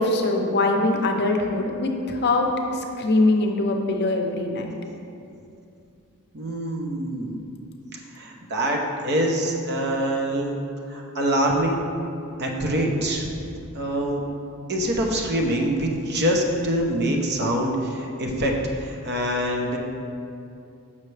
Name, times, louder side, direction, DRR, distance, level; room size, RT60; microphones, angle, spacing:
voice 1, 0.0-4.8, left 2 dB, 50° left, 2 dB, 0.6 m, -22 dB
voice 2, 6.3-7.4 7.9-10.6 10.9-11.8 12.4-13.4 13.7-14.2 14.7-18.5 18.8-19.8, right 1 dB, 50° right, 0 dB, 0.8 m, -25 dB
6.5 x 5.6 x 3.3 m, 2.6 s
head